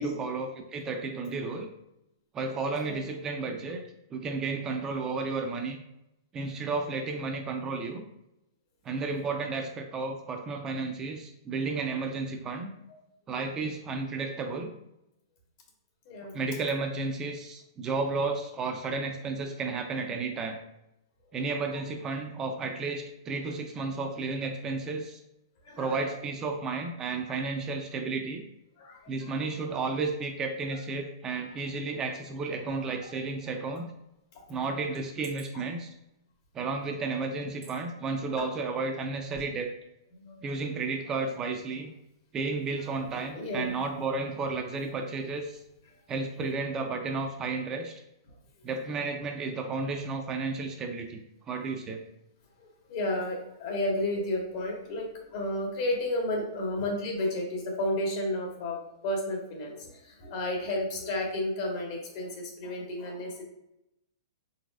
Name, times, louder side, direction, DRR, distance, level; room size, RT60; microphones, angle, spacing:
voice 1, 0.0-1.7 2.3-3.8 4.1-5.8 6.3-8.0 8.8-12.7 13.3-14.7 16.3-20.6 21.3-25.2 25.8-28.4 29.1-33.9 34.5-35.9 36.5-39.7 40.4-41.9 42.3-45.6 46.1-48.0 48.6-52.0, right 3 dB, 25° right, 4 dB, 0.5 m, -32 dB
voice 2, 16.0-16.4 25.6-26.2 28.8-29.3 30.7-30.8 39.3-39.4 40.2-40.5 43.1-43.8 48.3-48.4 52.6-58.8 59.0-63.4, left 1 dB, 50° left, 0 dB, 1.4 m, -32 dB
sound 1, 35.2-35.9 36.6-36.7 37.6-37.8 38.2-38.4, right 4 dB, 80° right, 1.0 m, -52 dB
4.0 x 3.9 x 2.4 m, 0.87 s
hypercardioid pair, 120°, 2 cm